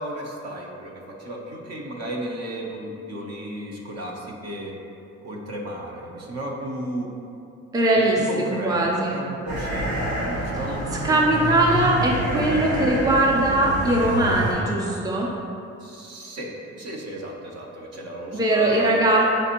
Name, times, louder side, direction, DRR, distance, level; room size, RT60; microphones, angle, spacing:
voice 1, 0.0-4.7 5.2-7.1 7.9-9.9 10.2-11.5 15.8-19.0, right 1 dB, 55° right, -1 dB, 0.7 m, -34 dB
voice 2, 7.7-9.2 11.0-15.3 18.3-19.2, right 1 dB, 10° right, -2 dB, 0.5 m, -20 dB
sound 1, 9.5-14.5, right 1 dB, 80° right, 1.3 m, -28 dB
5.2 x 3.3 x 2.9 m, 2.6 s
cardioid pair, 90°, 30 cm